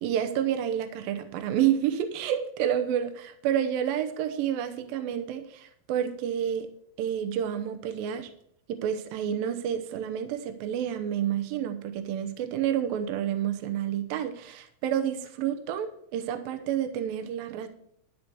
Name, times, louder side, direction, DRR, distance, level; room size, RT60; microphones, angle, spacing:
voice 1, 0.0-6.7 7.0-8.3 8.7-17.7, right 9 dB, 75° right, 7 dB, 2.5 m, -29 dB
12.5 x 5.0 x 7.7 m, 0.68 s
omnidirectional pair, 4.4 m